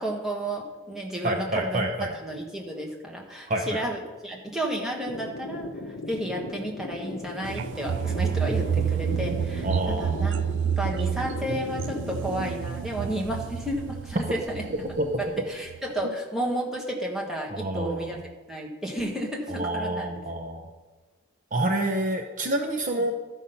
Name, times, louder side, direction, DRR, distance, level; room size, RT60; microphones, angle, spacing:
voice 1, 0.0-14.7 15.5-18.2 18.5-20.2, right 1 dB, ahead, -1 dB, 1.4 m, -32 dB
voice 2, 1.2-2.1 3.5-3.8 9.6-10.4 15.0-15.1 17.5-18.1 19.5-20.7 21.5-23.1, right 1 dB, 40° right, 4 dB, 0.7 m, -28 dB
sound 1, 5.1-12.5, left 3 dB, 65° left, 0.8 m, -38 dB
sound 2, 7.4-15.3 15.7-15.9, right 8 dB, 55° right, 0.3 m, -29 dB
12.5 x 5.4 x 5.6 m, 1.3 s
head